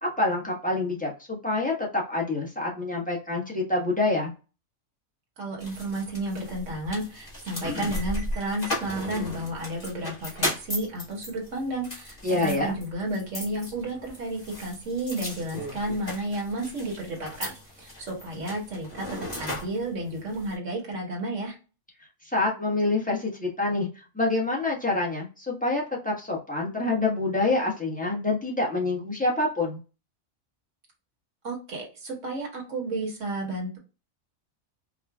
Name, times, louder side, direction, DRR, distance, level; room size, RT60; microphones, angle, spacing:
voice 1, 0.0-4.3 12.2-12.8 22.3-29.8, left 2 dB, 5° left, -4 dB, 1.0 m, -27 dB
voice 2, 5.4-17.5 17.8-21.6 31.4-33.8, right 1 dB, 65° right, 0 dB, 1.6 m, -32 dB
sound 1, 5.6-20.5, left 1 dB, 30° left, 1.6 m, -36 dB
4.8 x 2.4 x 2.3 m, 0.33 s
omnidirectional pair, 1.4 m